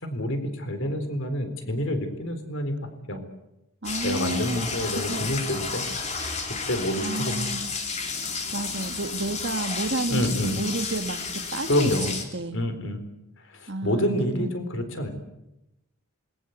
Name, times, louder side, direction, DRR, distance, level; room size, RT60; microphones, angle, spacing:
voice 1, 0.0-2.7 3.1-3.2 4.0-5.8 6.5-7.4 10.1-10.6 11.7-12.1 12.5-13.0 13.4-15.1, equal, 55° left, 8 dB, 4.2 m, -27 dB
sound 1, 3.8-12.2, left 4 dB, 30° left, 3.4 m, -32 dB
voice 2, 3.8-4.7 4.9-5.2 7.0-7.7 8.5-12.6 13.7-14.5, right 2 dB, 50° right, 9 dB, 1.6 m, -31 dB
26.5 x 21.5 x 8.2 m, 0.88 s
head